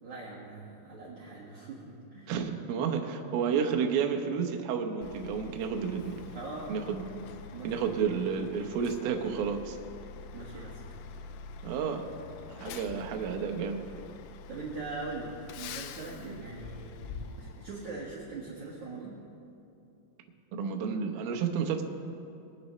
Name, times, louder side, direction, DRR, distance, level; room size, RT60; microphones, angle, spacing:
voice 1, 0.0-2.3 6.3-6.8 7.5-8.0 10.3-10.8 14.5-17.0 17.4-19.2, right 3 dB, 60° right, -7 dB, 2.1 m, -41 dB
voice 2, 2.3-6.2 6.7-7.0 7.6-9.8 11.6-12.1 12.5-13.8 20.5-21.8, right 6 dB, 85° right, 3 dB, 2.1 m, -31 dB
Truck, 5.0-18.1, left 5 dB, 85° left, 3.0 m, -46 dB
23.0 x 9.4 x 3.1 m, 2.7 s
omnidirectional pair, 5.6 m